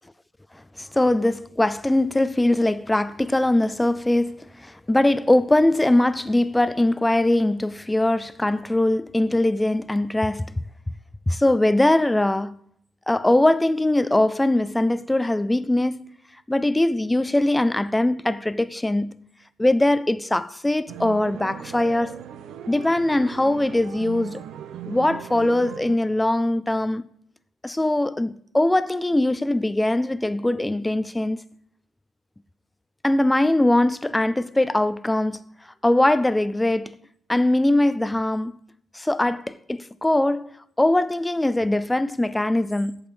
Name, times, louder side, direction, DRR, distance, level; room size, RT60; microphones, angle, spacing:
voice 1, 0.8-10.6 11.3-12.6 13.1-16.1 16.5-19.2 19.6-22.2 22.7-24.4 24.9-27.0 27.6-31.4 33.0-35.4 35.8-37.0 37.3-38.5 38.9-40.5 40.8-43.0, left 1 dB, 10° left, 0.5 m, -21 dB
sound 1, 20.9-26.0, right 9 dB, 75° right, 0.9 m, -38 dB
8.6 x 7.2 x 8.2 m
cardioid pair, 90°, 0 cm